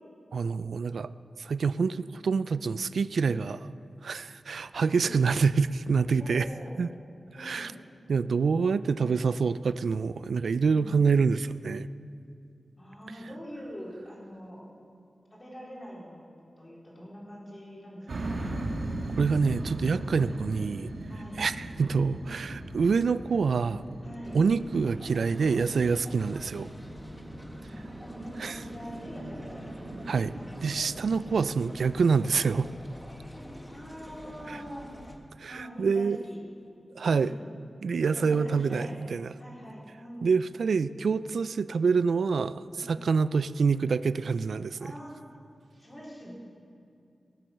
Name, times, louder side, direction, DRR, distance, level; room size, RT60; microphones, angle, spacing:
voice 1, 0.3-1.1 1.4-3.7 4.0-6.5 6.8-6.9 7.4-7.7 8.1-11.9 19.2-20.9 21.4-23.8 24.3-26.7 28.4-28.6 30.1-30.3 30.6-32.7 34.5-34.6 35.4-36.2 37.0-37.3 37.8-39.3 40.2-44.8, right 5 dB, 85° right, 15 dB, 0.3 m, -26 dB
voice 2, 4.7-5.2 6.2-6.8 7.3-7.8 10.6-10.9 12.8-14.7 15.3-16.2 16.6-18.4 21.1-21.4 24.0-24.4 28.1-30.0 30.3-30.5 33.7-34.9 35.5-36.4 37.1-37.4 38.0-39.0 39.4-40.3 42.7-43.1 44.8-45.1 45.7-46.4, equal, 25° left, -5 dB, 4.0 m, -44 dB
sound 1, 18.1-32.9, right 1 dB, 70° right, 1.6 m, -40 dB
sound 2, 24.2-35.2, equal, 10° left, 1.3 m, -46 dB
18.5 x 7.7 x 6.6 m, 2.5 s
wide cardioid pair, 120°, 0 cm